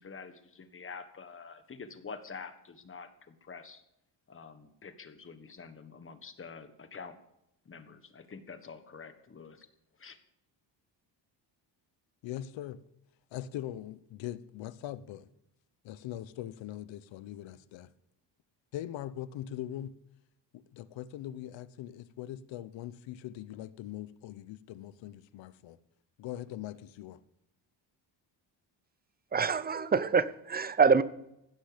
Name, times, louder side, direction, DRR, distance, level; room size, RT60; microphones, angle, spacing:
voice 1, 0.0-3.8 4.3-7.2 7.6-9.7 10.0-10.2, left 5 dB, 30° left, 1.4 m, -47 dB
voice 2, 12.2-12.8 13.3-15.3 15.8-17.9 18.7-19.9 20.5-25.8 26.2-27.2, left 12 dB, 90° left, 1.0 m, -41 dB
voice 3, 29.3-31.0, right 5 dB, 20° right, 0.6 m, -25 dB
16.5 x 12.0 x 5.2 m
cardioid pair, 145°, 44 cm